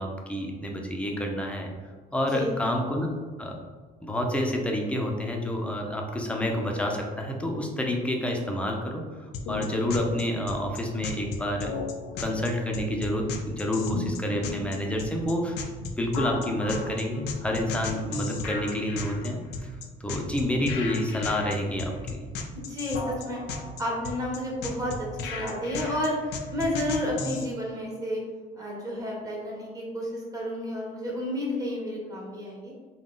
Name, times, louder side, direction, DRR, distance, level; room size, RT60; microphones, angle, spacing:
voice 1, 0.0-1.7 2.1-3.1 3.4-3.6 4.0-11.8 12.2-15.6 16.0-19.7 20.0-22.2, left 1 dB, 5° left, 1 dB, 0.6 m, -29 dB
sound 1, 9.3-27.5, left 4 dB, 80° left, 0.5 m, -35 dB
voice 2, 22.5-23.4 23.8-26.2 26.5-28.2 28.6-32.7, left 1 dB, 20° right, -3 dB, 1.1 m, -31 dB
3.7 x 2.3 x 3.7 m, 1.4 s
cardioid pair, 110°, 17 cm